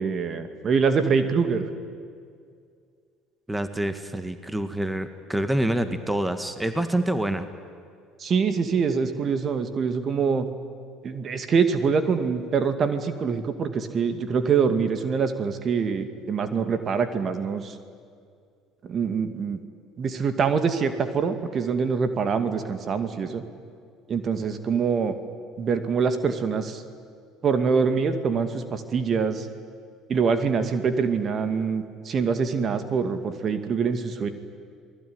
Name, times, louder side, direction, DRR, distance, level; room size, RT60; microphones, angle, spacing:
voice 1, 0.0-1.7 8.2-10.5 11.0-17.7 18.8-19.6 20.0-23.4 24.1-25.1 25.6-26.8 27.4-29.5 30.1-34.3, right 5 dB, 45° right, 9 dB, 2.3 m, -24 dB
voice 2, 3.5-7.5, right 1 dB, 10° right, 9 dB, 1.9 m, -26 dB
28.5 x 20.0 x 9.7 m, 2.2 s
hypercardioid pair, 65°, 0 cm